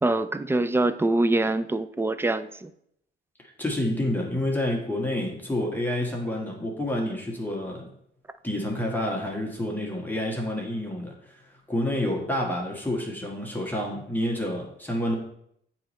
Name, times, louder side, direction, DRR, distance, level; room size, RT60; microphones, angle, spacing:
voice 1, 0.0-2.7, right 2 dB, 10° right, 12 dB, 0.3 m, -24 dB
voice 2, 3.4-7.9 8.4-11.4 11.7-15.1, left 1 dB, 10° left, -2 dB, 1.3 m, -29 dB
8.0 x 3.0 x 4.1 m, 0.72 s
cardioid pair, 90°, 20 cm